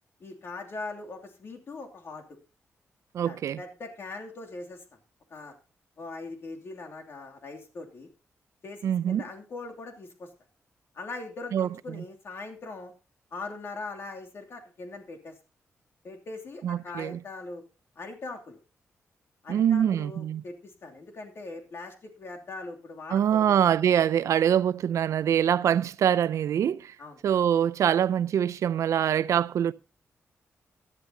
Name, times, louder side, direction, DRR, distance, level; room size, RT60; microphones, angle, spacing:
voice 1, 0.2-2.2 3.2-4.8 5.3-5.5 6.0-8.1 8.6-10.3 10.9-12.9 13.3-15.3 16.0-17.6 18.0-18.6 19.4-23.6 27.0-27.2, left 3 dB, 55° left, 2.8 m, -41 dB
voice 2, 3.1-3.6 8.8-9.2 11.5-12.0 16.6-17.2 19.5-20.4 23.1-26.9 27.2-29.7, right 9 dB, 75° right, 0.5 m, -24 dB
16.5 x 11.0 x 2.9 m
wide cardioid pair, 130°, 5 cm